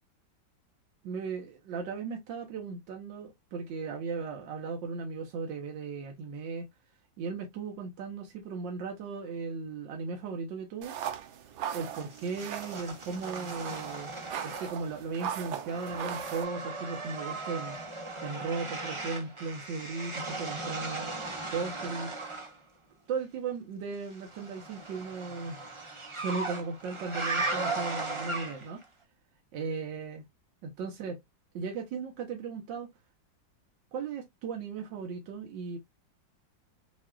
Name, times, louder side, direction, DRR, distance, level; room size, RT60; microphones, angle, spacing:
voice 1, 1.0-6.7 7.2-11.0 11.7-14.1 14.4-21.1 21.5-22.1 23.1-25.6 26.1-28.8 29.5-30.2 30.6-31.2 31.5-32.9 33.9-35.8, right 5 dB, 70° right, 1.7 m, -37 dB
sound 1, 10.8-16.4, right 9 dB, 85° right, 1.5 m, -39 dB
sound 2, 11.9-15.0 15.3-22.6 24.1-28.8, right 3 dB, 30° right, 0.6 m, -37 dB
6.2 x 2.4 x 2.3 m
omnidirectional pair, 2.1 m